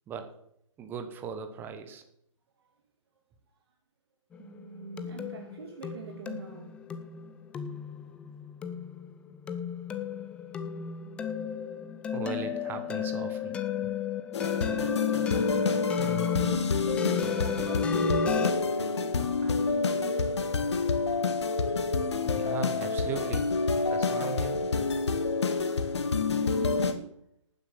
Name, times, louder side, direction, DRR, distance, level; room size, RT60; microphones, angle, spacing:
voice 1, 0.8-2.0 12.1-13.6 22.3-23.5 23.9-24.6, right 6 dB, 10° right, 1.1 m, -38 dB
sound 1, 4.3-18.5, left 8 dB, 5° left, 0.5 m, -34 dB
voice 2, 4.4-6.7 17.2-20.4 26.4-27.1, right 5 dB, 50° right, 2.6 m, -43 dB
sound 2, 14.3-26.9, left 4 dB, 55° left, 1.7 m, -28 dB
11.5 x 9.4 x 7.1 m
figure-of-eight pair, 140°, 17 cm